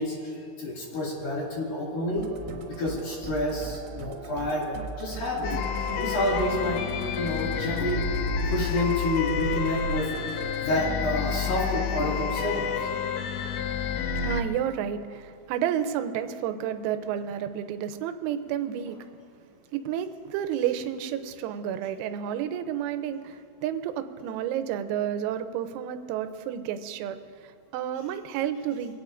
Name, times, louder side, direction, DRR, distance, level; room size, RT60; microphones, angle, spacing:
voice 1, 0.0-2.3 2.7-5.5 6.0-6.8 7.1-8.0 8.4-10.1 10.6-12.7, left 1 dB, 55° left, -4 dB, 3.4 m, -29 dB
Musical instrument, 2.2-10.6, right 5 dB, 75° right, 3.1 m, -37 dB
sound 1, 5.4-14.4, left 8 dB, 85° left, 2.9 m, -30 dB
voice 2, 14.2-19.0 19.7-28.9, right 9 dB, 90° right, 9 dB, 3.4 m, -31 dB
24.5 x 16.5 x 2.5 m, 2.5 s
omnidirectional pair, 6.0 m